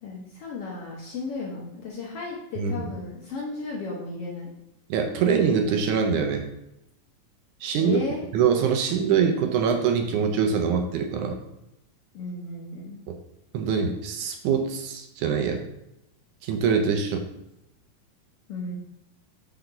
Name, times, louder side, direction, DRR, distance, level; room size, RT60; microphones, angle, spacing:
voice 1, 0.0-4.5 7.8-8.2 12.1-13.0 18.5-18.7, left 3 dB, 65° left, -3 dB, 1.6 m, -34 dB
voice 2, 2.6-2.9 4.9-6.5 7.6-8.0 8.3-11.4 13.1-13.2 13.5-15.6 16.4-17.3, right 6 dB, 75° right, 4 dB, 2.0 m, -24 dB
6.7 x 5.9 x 3.8 m, 0.86 s
omnidirectional pair, 3.8 m